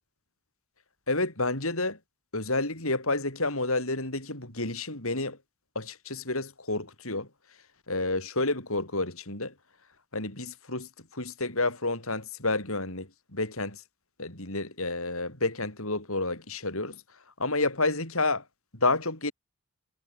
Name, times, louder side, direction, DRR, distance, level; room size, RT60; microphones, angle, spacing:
voice 1, 1.1-2.0 2.3-5.4 5.7-7.3 7.9-9.5 10.1-13.8 14.2-17.0 17.4-18.4 18.8-19.3, left 2 dB, 70° left, 7.6 m, -30 dB
head